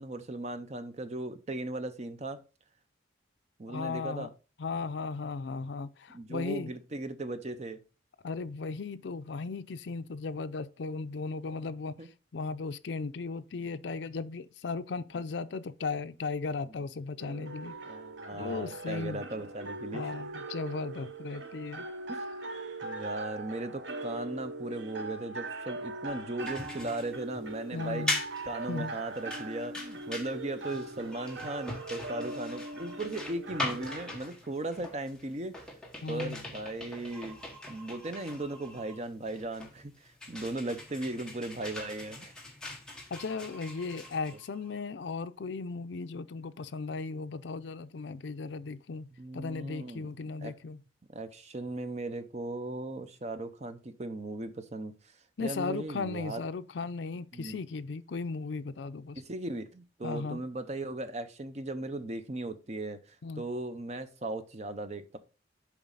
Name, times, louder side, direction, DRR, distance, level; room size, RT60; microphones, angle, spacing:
voice 1, 0.0-2.4 3.6-4.3 6.1-7.8 12.0-12.1 17.8-20.1 22.1-22.2 22.8-28.1 28.4-35.7 36.1-37.4 37.7-42.3 49.2-50.1 50.4-50.5 51.1-55.1 55.4-56.4 57.3-57.6 59.2-63.0 63.4-65.2, right 2 dB, 35° right, 0.6 m, -37 dB
voice 2, 3.7-4.3 4.6-6.8 8.2-12.0 12.3-17.8 18.3-19.2 19.9-21.9 27.7-28.2 28.7-29.0 36.0-36.4 43.1-50.8 55.4-59.2 60.0-60.4 63.2-63.4, left 4 dB, 70° left, 0.5 m, -36 dB
sound 1, 17.2-34.2, right 2 dB, 75° right, 0.8 m, -41 dB
sound 2, 26.4-44.8, left 2 dB, 5° left, 1.2 m, -41 dB
7.2 x 4.6 x 3.9 m
head